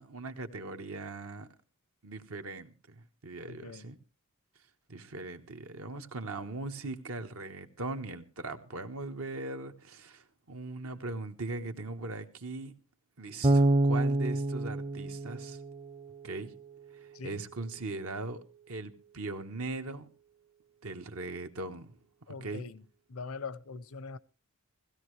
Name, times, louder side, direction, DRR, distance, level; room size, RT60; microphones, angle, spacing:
voice 1, 0.0-1.5 2.0-4.0 4.9-12.7 13.2-15.6 16.2-16.5 16.9-20.1 20.8-22.0 22.3-22.7, right 2 dB, 80° right, 1.3 m, -40 dB
voice 2, 3.5-3.9 17.1-17.4 22.3-22.8 23.1-24.2, left 4 dB, 85° left, 0.7 m, -42 dB
Bass guitar, 13.4-16.5, right 1 dB, 25° right, 0.6 m, -28 dB
16.5 x 16.0 x 3.2 m
head